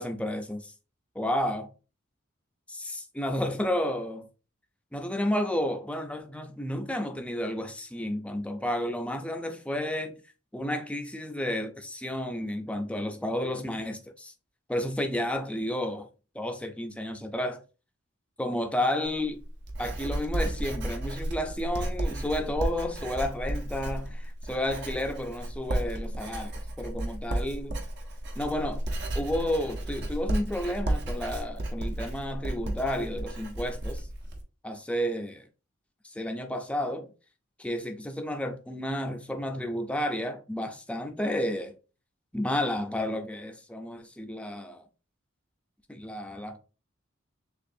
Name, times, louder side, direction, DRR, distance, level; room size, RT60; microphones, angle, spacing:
voice 1, 0.0-0.7 1.2-1.7 2.7-4.3 4.9-10.2 10.5-14.3 14.7-16.1 16.3-17.6 18.4-19.4 19.8-26.5 26.8-27.8 28.4-28.8 29.1-34.1 34.6-35.5 36.0-37.1 37.6-41.7 42.3-44.8 45.9-46.6, left 1 dB, 5° left, 0.5 m, -31 dB
Writing, 19.0-34.4, right 1 dB, 55° right, 1.0 m, -33 dB
6.6 x 2.5 x 2.6 m
head